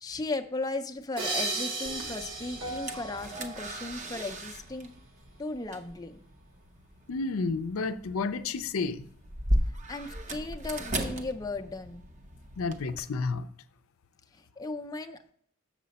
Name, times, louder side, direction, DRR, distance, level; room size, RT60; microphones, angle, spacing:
voice 1, 0.0-4.9 5.4-6.2 9.7-12.0 14.3-15.3, left 2 dB, 20° left, 0.5 m, -36 dB
sound 1, 1.2-5.5, right 1 dB, 60° right, 1.1 m, -44 dB
sound 2, 1.2-4.2, right 3 dB, 80° right, 1.7 m, -36 dB
sound 3, 1.8-13.0, right 1 dB, 35° right, 0.7 m, -37 dB
voice 2, 7.1-9.1 12.6-13.5, left 4 dB, 75° left, 0.5 m, -31 dB
7.3 x 6.6 x 4.1 m
head